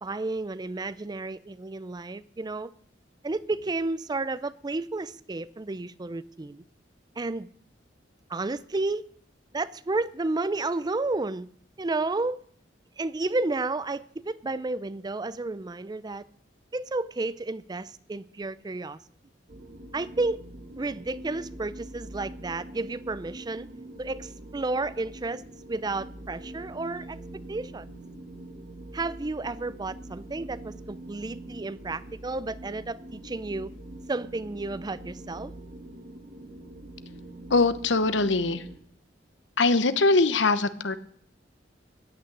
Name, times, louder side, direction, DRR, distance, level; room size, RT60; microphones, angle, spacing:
voice 1, 0.0-2.7 3.2-6.6 7.2-7.5 8.3-9.1 9.5-11.5 11.8-12.4 13.0-16.2 16.7-19.0 19.9-20.4 20.8-23.7 24.0-27.2 27.5-27.9 28.9-33.7 34.1-35.5, right 2 dB, 20° right, 0.4 m, -31 dB
sound 1, 19.5-38.8, right 1 dB, 50° right, 2.0 m, -44 dB
voice 2, 37.5-38.6 39.6-41.0, left 3 dB, 80° left, 1.0 m, -22 dB
15.0 x 6.6 x 9.8 m
head